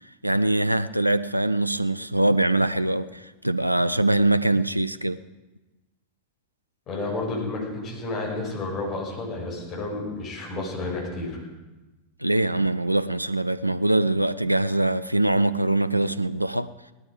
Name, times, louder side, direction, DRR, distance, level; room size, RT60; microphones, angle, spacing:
voice 1, 0.2-5.2 12.2-16.7, right 2 dB, 85° right, 0.4 m, -23 dB
voice 2, 6.9-11.4, left 2 dB, 35° left, 6.1 m, -31 dB
18.0 x 12.5 x 5.0 m
figure-of-eight pair, 90°, 0 cm